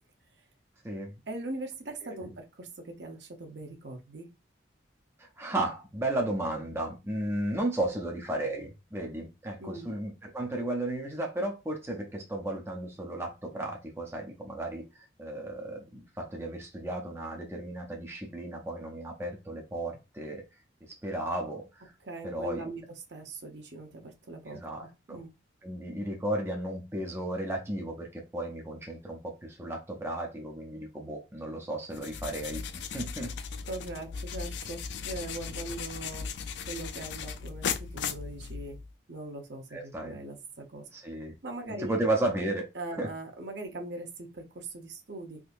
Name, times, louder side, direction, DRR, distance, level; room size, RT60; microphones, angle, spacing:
voice 1, 1.3-4.3 9.6-9.9 22.0-22.8 23.1-24.6 25.1-25.3 33.7-36.3 36.7-38.8 39.1-40.9 41.4-41.9 42.7-45.4, right 2 dB, 60° right, 0.8 m, -40 dB
voice 2, 5.2-20.5 20.9-21.9 22.2-22.7 24.5-25.2 25.6-33.4 39.7-40.2 40.9-41.3 41.8-42.7 43.0-43.1, right 1 dB, 15° right, 0.5 m, -34 dB
sound 1, 31.9-38.9, left 6 dB, 65° left, 0.3 m, -37 dB
3.6 x 2.7 x 2.5 m
head